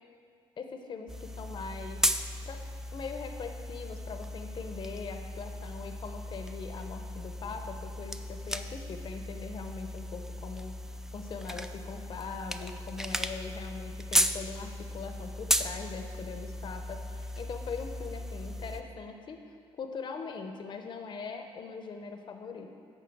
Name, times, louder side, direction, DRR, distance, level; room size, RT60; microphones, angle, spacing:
voice 1, 0.6-2.1 2.5-2.6 2.9-22.8, left 5 dB, 50° left, 5 dB, 0.8 m, -41 dB
sound 1, 1.1-18.8, equal, 5° right, 0.4 m, -35 dB
8.6 x 5.4 x 7.7 m, 2.2 s
cardioid pair, 110°, 10 cm